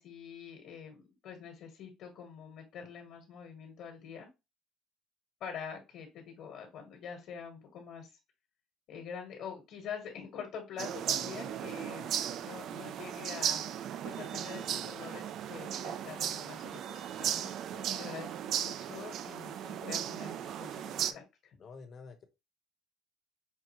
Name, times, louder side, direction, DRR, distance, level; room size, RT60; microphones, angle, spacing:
voice 1, 0.0-4.3 5.4-8.1 8.9-13.6 14.0-17.5 18.0-21.6, left 7 dB, 55° left, 2 dB, 1.4 m, -45 dB
sound 1, 10.8-21.1, right 9 dB, 50° right, 0.4 m, -36 dB
voice 2, 17.7-18.1 21.6-22.3, left 4 dB, 35° left, 6 dB, 0.9 m, -50 dB
5.5 x 2.5 x 3.0 m, 0.24 s
cardioid pair, 145°, 0 cm